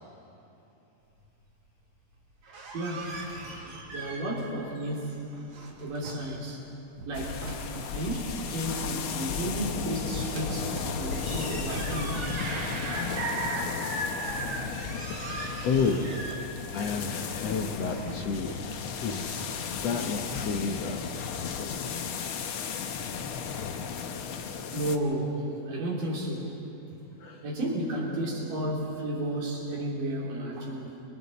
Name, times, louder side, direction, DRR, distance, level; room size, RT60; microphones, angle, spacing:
sound 1, 2.3-4.5 4.8-6.3 6.8-8.0 10.2-13.7 14.1-18.6, right 2 dB, 55° right, 3.5 m, -40 dB
voice 1, 2.7-3.2 3.9-5.2 5.8-6.6 7.1-7.4 7.9-12.3 12.8-14.9 24.7-26.6 27.4-31.0, right 1 dB, 80° right, -3 dB, 4.8 m, -32 dB
sound 2, 7.1-25.0, left 6 dB, 80° left, 1.2 m, -35 dB
voice 2, 15.6-16.1 16.7-21.0 27.2-27.4, left 5 dB, 65° left, 3 dB, 1.8 m, -31 dB
28.5 x 24.5 x 4.2 m, 2.9 s
omnidirectional pair, 3.8 m